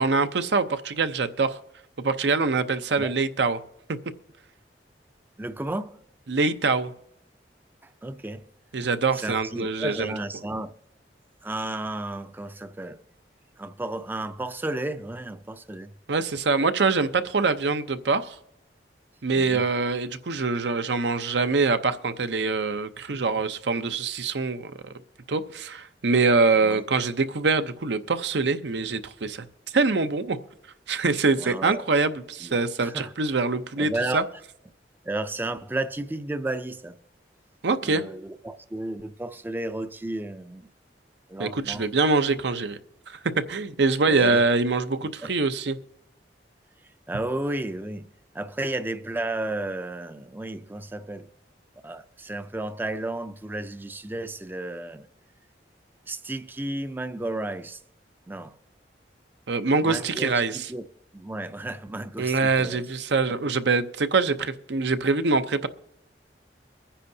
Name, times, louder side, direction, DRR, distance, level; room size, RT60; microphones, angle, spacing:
voice 1, 0.0-1.6 2.0-3.6 6.3-6.9 8.7-10.1 16.1-18.4 19.2-24.9 25.3-29.5 29.7-30.4 30.9-34.2 37.6-38.0 41.4-42.8 43.1-43.2 43.5-45.8 59.5-60.7 62.2-65.7, right 4 dB, 80° right, 0.7 m, -24 dB
voice 2, 5.4-6.0 7.8-8.4 9.1-10.7 11.4-13.0 13.6-15.9 19.4-19.7 26.6-26.8 31.4-31.9 32.4-33.1 33.8-34.4 35.0-37.0 37.8-40.7 41.3-41.9 44.1-44.4 45.2-45.3 47.1-48.1 48.3-51.3 51.8-55.1 56.1-57.8 58.3-58.6 59.8-60.9 61.1-62.9, right 2 dB, 10° right, 0.4 m, -33 dB
23.0 x 10.0 x 2.7 m
head